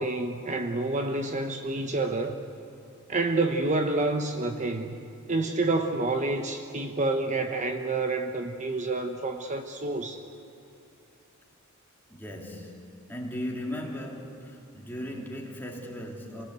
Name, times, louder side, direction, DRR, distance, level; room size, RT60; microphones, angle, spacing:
voice 1, 0.0-2.4 3.1-5.0 5.3-10.2, right 2 dB, 35° right, 6 dB, 1.0 m, -28 dB
voice 2, 12.1-16.5, equal, 10° left, -1 dB, 3.0 m, -37 dB
28.0 x 20.0 x 8.2 m, 2.9 s
head